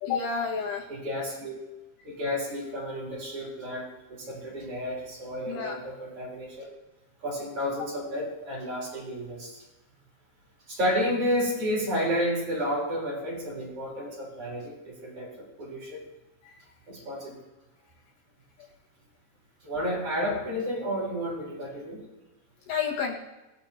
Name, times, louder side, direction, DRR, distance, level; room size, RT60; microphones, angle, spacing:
voice 1, 0.0-0.9 5.5-5.7 16.5-16.6 22.7-23.2, left 6 dB, 90° left, -2 dB, 3.9 m, -30 dB
voice 2, 0.9-1.6 2.0-6.7 7.2-9.6 10.7-16.0 16.9-17.4 19.6-22.0, equal, 35° right, -5 dB, 5.2 m, -31 dB
19.0 x 11.0 x 3.0 m, 1.0 s
omnidirectional pair, 4.6 m